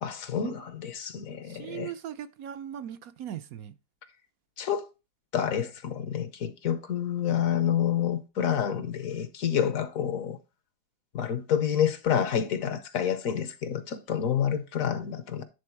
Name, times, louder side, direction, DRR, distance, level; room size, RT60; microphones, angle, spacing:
voice 1, 0.0-1.9 4.6-4.9 5.3-10.4 11.1-15.4, left 9 dB, 65° left, 1.2 m, -28 dB
voice 2, 1.4-3.7 7.3-7.4, right 10 dB, 70° right, 1.0 m, -39 dB
9.6 x 3.7 x 4.5 m
omnidirectional pair, 1.7 m